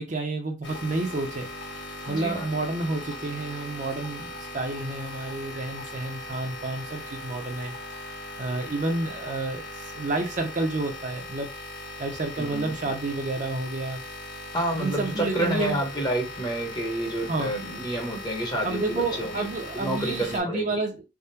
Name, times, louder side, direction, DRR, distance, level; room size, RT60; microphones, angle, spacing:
voice 1, 0.0-1.5 2.1-7.7 8.4-11.5 12.0-14.0 14.8-15.8 17.3-17.5 18.6-21.0, right 2 dB, 45° right, 0.6 m, -30 dB
sound 1, 0.6-20.4, left 1 dB, 85° left, 1.4 m, -39 dB
voice 2, 2.1-2.4 12.4-12.7 14.5-19.5 19.7-20.8, right 1 dB, 20° left, 0.9 m, -29 dB
3.5 x 2.2 x 2.7 m
head